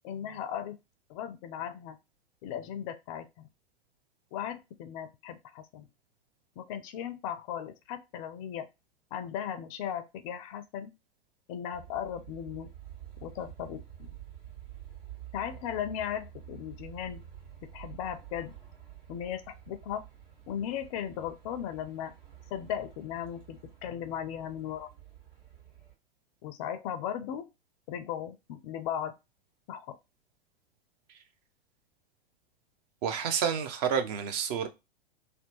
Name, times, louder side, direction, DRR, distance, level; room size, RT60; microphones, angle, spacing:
voice 1, 0.0-0.8 1.1-2.0 2.4-3.5 4.3-5.9 6.6-8.7 9.1-10.9 11.5-12.7 13.2-14.1 15.3-17.2 17.7-18.5 19.1-20.0 20.5-22.1 22.5-24.9 26.4-27.5 27.9-29.1 29.7-30.0, left 9 dB, 40° left, 0.4 m, -37 dB
sound 1, 11.7-25.9, right 10 dB, 60° right, 1.5 m, -49 dB
voice 2, 33.0-34.7, right 7 dB, 45° right, 0.6 m, -29 dB
2.7 x 2.1 x 2.8 m
figure-of-eight pair, 100°, 29 cm